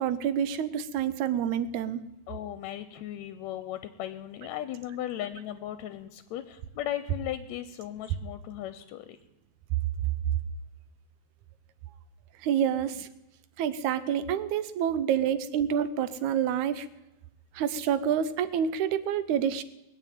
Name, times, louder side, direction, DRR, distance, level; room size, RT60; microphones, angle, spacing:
voice 1, 0.0-2.0 12.4-13.1 13.6-16.9 17.5-19.6, right 9 dB, 80° right, 13 dB, 2.2 m, -28 dB
voice 2, 2.3-9.2, left 12 dB, 75° left, 11 dB, 1.9 m, -37 dB
20.5 x 7.4 x 9.2 m, 0.94 s
omnidirectional pair, 3.4 m